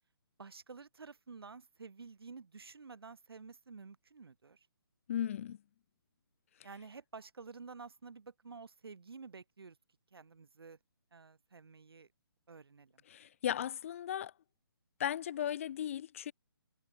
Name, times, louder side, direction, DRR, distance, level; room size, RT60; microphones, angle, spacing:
voice 1, 0.4-4.7 6.6-9.8 10.1-10.8 11.1-12.1 12.5-13.0, right 4 dB, 75° right, 3.7 m, -51 dB
voice 2, 5.1-5.6 13.1-14.3 15.0-16.3, left 10 dB, 35° left, 0.9 m, -36 dB
hypercardioid pair, 160°, 13 cm